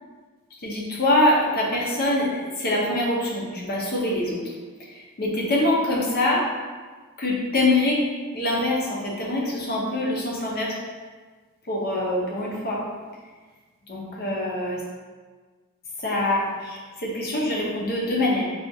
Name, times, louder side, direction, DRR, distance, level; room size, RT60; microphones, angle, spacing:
voice 1, 0.6-4.4 4.9-6.4 7.2-8.0 8.3-10.7 11.7-12.8 13.9-14.8 16.0-18.4, left 1 dB, 45° left, -4 dB, 0.7 m, -24 dB
3.4 x 2.4 x 2.7 m, 1.4 s
head